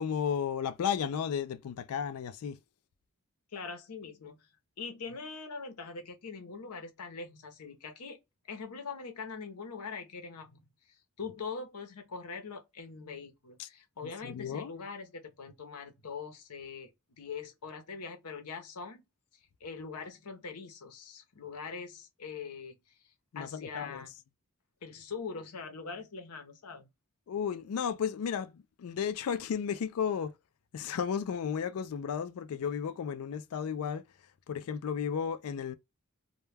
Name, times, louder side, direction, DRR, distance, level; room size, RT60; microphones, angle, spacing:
voice 1, 0.0-2.6 13.6-13.7 14.0-14.7 23.3-24.0 27.3-30.3 30.7-34.1 34.5-35.7, left 7 dB, 70° left, 0.3 m, -34 dB
voice 2, 3.5-4.4 4.8-8.2 8.5-10.6 10.9-16.9 17.2-19.0 19.6-22.8 23.3-24.1 24.8-26.9, left 5 dB, 85° left, 0.7 m, -42 dB
2.2 x 2.2 x 3.2 m
head